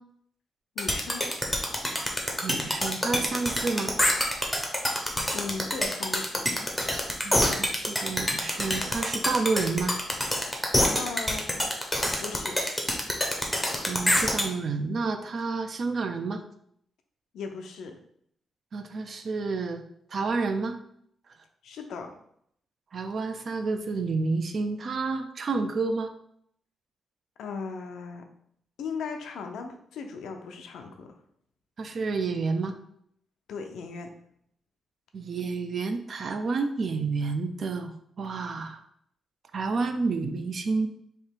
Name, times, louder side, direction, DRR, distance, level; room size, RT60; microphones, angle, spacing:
voice 1, 0.8-1.2 5.3-6.5 10.9-11.5 12.2-12.6 17.3-18.0 21.6-22.1 27.4-28.3 28.8-31.1 33.5-34.1, left 5 dB, 85° left, 4 dB, 0.6 m, -37 dB
sound 1, 0.8-14.4, left 1 dB, 5° left, 0.7 m, -26 dB
voice 2, 2.4-3.9 7.2-10.0 13.9-16.4 18.7-19.8 20.1-20.8 22.9-26.1 31.8-32.7 35.1-37.9 38.2-38.8 39.5-40.9, right 4 dB, 40° right, 7 dB, 0.4 m, -29 dB
3.3 x 2.9 x 4.4 m, 0.69 s
wide cardioid pair, 155°, 0 cm